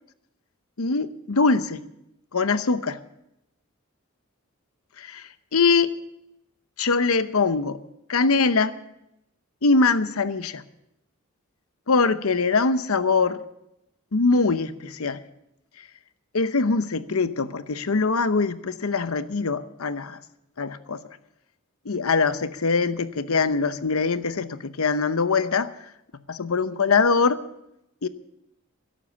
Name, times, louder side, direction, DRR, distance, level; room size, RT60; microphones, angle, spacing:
voice 1, 0.8-1.8 2.3-3.0 5.0-5.9 6.8-7.8 8.1-8.7 9.6-10.6 11.9-13.4 14.1-15.2 16.3-20.2 20.6-21.0 21.9-25.7 26.3-27.4 28.0-28.1, left 4 dB, 80° left, 13 dB, 0.8 m, -22 dB
13.5 x 11.5 x 7.0 m, 0.84 s
head